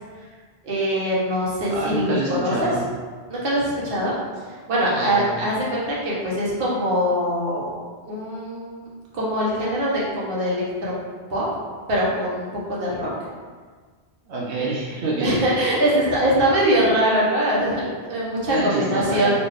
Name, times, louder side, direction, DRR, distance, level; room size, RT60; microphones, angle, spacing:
voice 1, 0.6-2.7 3.3-4.2 4.5-7.7 8.0-8.9 9.1-10.9 11.3-11.4 11.9-13.1 15.2-19.4, equal, 60° right, -6 dB, 1.1 m, -22 dB
voice 2, 1.7-2.9 4.9-5.5 14.3-15.4 18.5-19.4, right 2 dB, 90° right, -3 dB, 0.9 m, -27 dB
4.0 x 2.6 x 3.1 m, 1.5 s
omnidirectional pair, 1.1 m